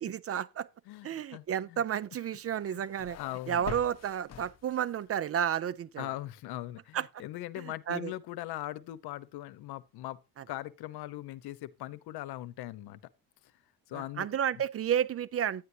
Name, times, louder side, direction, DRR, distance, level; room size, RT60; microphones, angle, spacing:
voice 1, 0.0-0.7 1.0-3.2 3.5-6.1 6.9-7.1 7.9-8.1 13.9-15.6, right 9 dB, 35° right, 0.6 m, -31 dB
voice 2, 0.9-1.8 2.7-2.8 3.2-3.6 6.0-10.2 10.5-13.0 13.9-14.3, left 15 dB, 75° left, 1.0 m, -40 dB
sound 1, 2.4-5.1, left 9 dB, 40° left, 1.1 m, -45 dB
10.5 x 9.5 x 2.8 m
cardioid pair, 135°, 39 cm